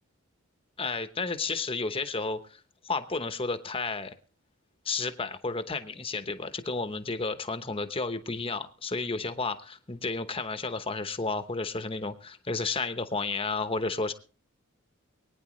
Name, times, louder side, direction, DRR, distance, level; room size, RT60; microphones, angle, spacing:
voice 1, 0.8-2.4 2.8-4.1 4.8-14.1, left 3 dB, 25° left, 10 dB, 0.9 m, -32 dB
24.0 x 9.6 x 3.2 m, 0.38 s
head